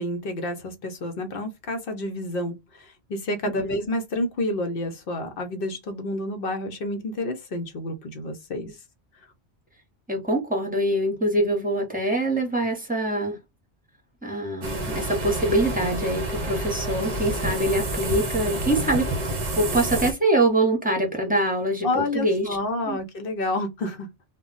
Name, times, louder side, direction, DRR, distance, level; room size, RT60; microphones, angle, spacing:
voice 1, 0.0-8.7 21.8-24.1, left 1 dB, 60° left, 0.8 m, -29 dB
voice 2, 10.1-13.4 14.2-19.1 19.6-22.5 22.9-23.0, right 1 dB, 10° right, 0.7 m, -24 dB
sound 1, 14.6-20.1, right 2 dB, 45° right, 0.6 m, -28 dB
2.2 x 2.1 x 3.7 m
omnidirectional pair, 1.2 m